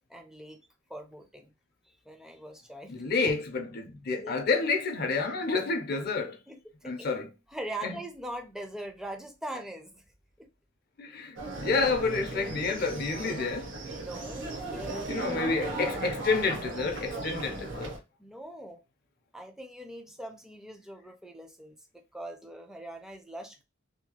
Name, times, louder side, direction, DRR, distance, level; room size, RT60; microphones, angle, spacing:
voice 1, 0.1-0.6 0.9-1.5 1.9-3.0 4.2-4.4 6.5-7.1 7.5-10.0 10.4-10.5 13.8-15.8 18.2-18.8 19.3-23.6, right 1 dB, 5° right, 0.4 m, -42 dB
voice 2, 2.9-6.4 6.8-7.3 7.8-8.0 11.0-13.8 15.1-18.0, left 4 dB, 50° left, 0.5 m, -29 dB
sound 1, 11.4-18.0, right 2 dB, 70° right, 0.7 m, -36 dB
2.7 x 2.3 x 2.8 m
head